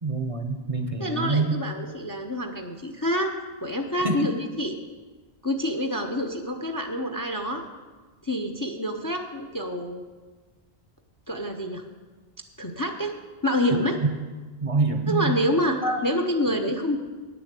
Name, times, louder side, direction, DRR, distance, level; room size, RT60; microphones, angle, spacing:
voice 1, 0.0-1.5 4.0-4.3 13.7-13.8 14.6-15.3 15.7-16.0 16.5-16.6, right 3 dB, 35° right, 6 dB, 0.8 m, -26 dB
voice 2, 1.0-3.3 3.6-4.8 5.4-7.6 8.2-10.0 11.3-11.8 12.6-13.1 13.4-14.0 15.1-17.0, left 1 dB, 25° left, 5 dB, 0.6 m, -27 dB
9.2 x 7.0 x 8.1 m, 1.3 s
omnidirectional pair, 1.1 m